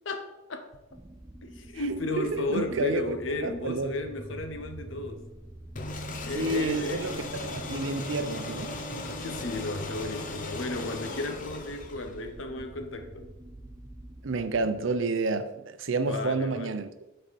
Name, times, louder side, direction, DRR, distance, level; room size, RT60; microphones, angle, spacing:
voice 1, 0.0-0.7 1.4-5.3 6.1-7.0 9.2-13.3 16.1-16.8, left 2 dB, 80° left, 0.9 m, -34 dB
sound 1, 0.9-15.0, right 1 dB, 15° right, 0.4 m, -47 dB
voice 2, 1.8-3.2 3.4-3.9 6.3-8.8 14.2-16.9, right 3 dB, 75° right, 0.6 m, -30 dB
sound 2, 5.8-12.3, left 2 dB, 45° left, 0.8 m, -37 dB
7.9 x 4.4 x 4.1 m
head